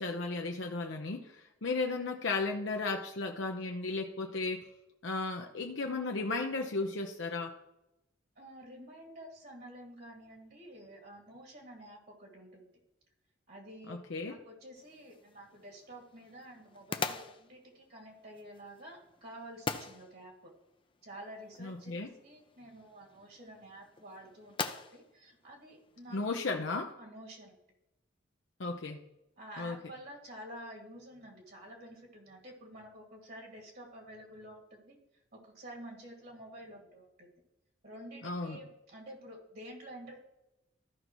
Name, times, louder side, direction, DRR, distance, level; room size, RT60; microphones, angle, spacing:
voice 1, 0.0-4.7 5.0-7.5 13.9-14.4 21.6-22.1 26.1-26.9 28.6-29.0 29.6-29.8 38.2-38.6, left 3 dB, 70° left, 2 dB, 0.8 m, -35 dB
voice 2, 8.4-12.7 13.5-14.0 14.3-20.5 21.0-21.9 22.2-26.2 27.0-27.6 29.4-35.0 35.3-37.3 37.8-40.2, right 1 dB, 55° right, 1 dB, 2.2 m, -50 dB
sound 1, 14.8-26.5, left 5 dB, 30° left, 0.5 m, -44 dB
14.5 x 5.4 x 3.0 m, 0.89 s
head